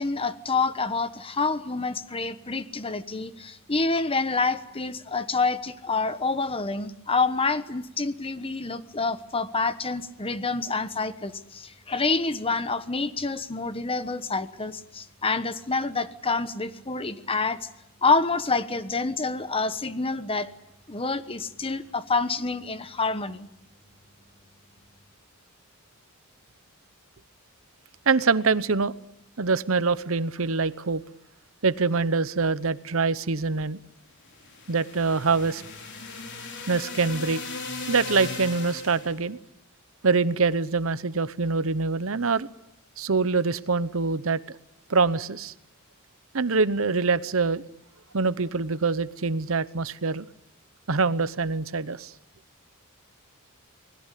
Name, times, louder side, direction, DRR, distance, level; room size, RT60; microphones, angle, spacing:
voice 1, 0.0-17.7 18.0-20.5 20.9-23.5, left 3 dB, 25° left, 12 dB, 1.2 m, -27 dB
voice 2, 28.1-28.9 29.4-31.0 31.6-33.8 34.7-35.6 36.7-37.4 37.9-39.4 40.0-42.5 43.0-44.4 44.9-45.5 46.3-47.6 48.1-50.3 50.9-52.1, right 4 dB, 70° right, 16 dB, 0.9 m, -24 dB
sound 1, 34.2-39.2, left 4 dB, 55° left, 4.4 m, -37 dB
29.5 x 21.0 x 8.4 m, 0.82 s
head